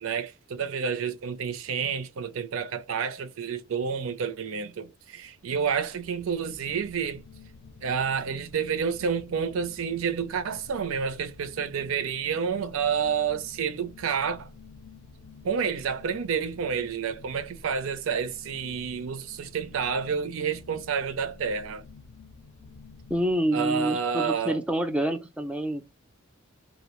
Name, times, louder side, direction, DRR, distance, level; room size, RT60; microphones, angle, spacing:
voice 1, 0.0-7.2 7.8-14.5 15.4-21.8 23.5-24.6, right 6 dB, 75° right, 0.4 m, -29 dB
sound 1, 5.1-23.3, left 4 dB, 80° left, 0.5 m, -50 dB
voice 2, 23.1-25.9, right 1 dB, 5° right, 0.3 m, -27 dB
2.5 x 2.1 x 2.8 m
head